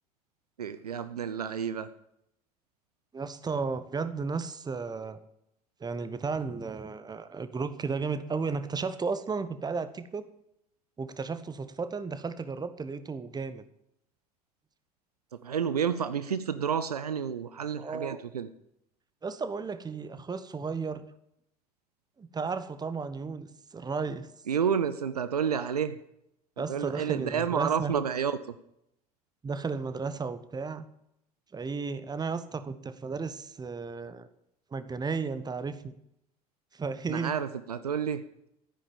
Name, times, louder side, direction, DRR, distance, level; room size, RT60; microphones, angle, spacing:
voice 1, 0.6-1.9 15.4-18.5 24.5-25.9 26.7-28.4 37.1-38.2, right 7 dB, 80° right, 13 dB, 0.6 m, -30 dB
voice 2, 3.1-5.2 5.8-10.3 11.0-13.6 17.8-18.2 19.2-21.0 22.2-24.3 26.6-27.9 29.4-30.8 31.5-34.3 34.7-35.9 36.7-37.4, right 4 dB, 20° right, 12 dB, 1.1 m, -34 dB
13.0 x 9.9 x 7.2 m, 0.79 s
figure-of-eight pair, 60°, 19 cm